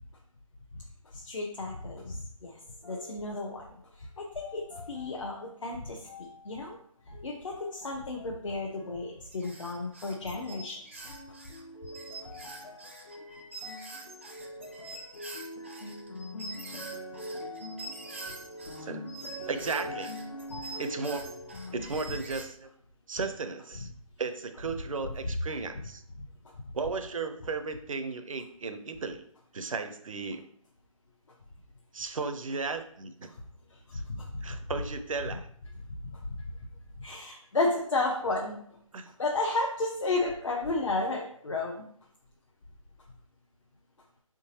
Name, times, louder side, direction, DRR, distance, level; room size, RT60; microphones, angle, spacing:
voice 1, 1.1-2.6 2.9-3.7 4.0-6.8 7.2-10.8 26.2-26.3 33.9-34.4 36.0-36.4 37.0-38.6 39.2-41.8, left 2 dB, 60° left, -1 dB, 0.7 m, -32 dB
sound 1, 2.8-3.8 4.4-5.4 6.0-6.7 7.1-8.4 8.8-9.6 10.2-10.7 11.0-21.9, left 1 dB, 75° left, 1.1 m, -44 dB
sound 2, 9.3-18.8 19.1-22.4, right 2 dB, 20° right, 0.4 m, -45 dB
voice 2, 19.5-20.1 20.8-21.3 21.7-22.7 23.1-23.9 24.2-26.0 26.7-29.2 29.5-30.5 31.9-33.3 33.9-34.0 34.4-35.5 38.9-39.1, right 4 dB, 70° right, 8 dB, 0.6 m, -35 dB
4.6 x 3.7 x 2.8 m, 0.64 s
hypercardioid pair, 170°, 18 cm